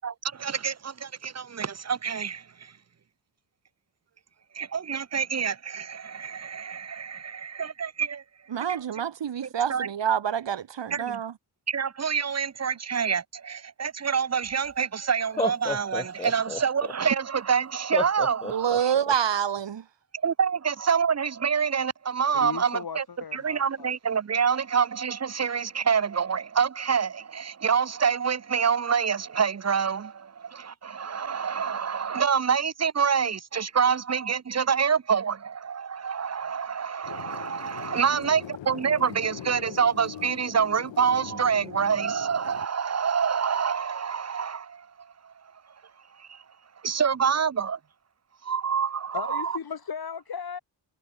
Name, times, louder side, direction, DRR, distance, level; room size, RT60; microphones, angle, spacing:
voice 1, 0.0-2.7 4.5-8.2 9.7-9.9 10.9-11.2 11.7-18.9 20.1-23.0 23.3-45.3 46.2-46.4 46.8-47.8 48.4-49.6, right 6 dB, 35° right, 1.1 m, -27 dB
voice 2, 8.5-11.4 18.4-19.9 38.1-38.2, right 9 dB, 70° right, 5.2 m, -27 dB
Laughter, 14.5-14.6 15.2-16.9 17.9-19.1, left 4 dB, 15° left, 0.3 m, -31 dB
voice 3, 22.3-23.9 49.1-50.6, left 6 dB, 55° left, 7.9 m, -36 dB
sound 1, 37.0-42.7, left 11 dB, 80° left, 1.9 m, -42 dB
cardioid pair, 100°, 45 cm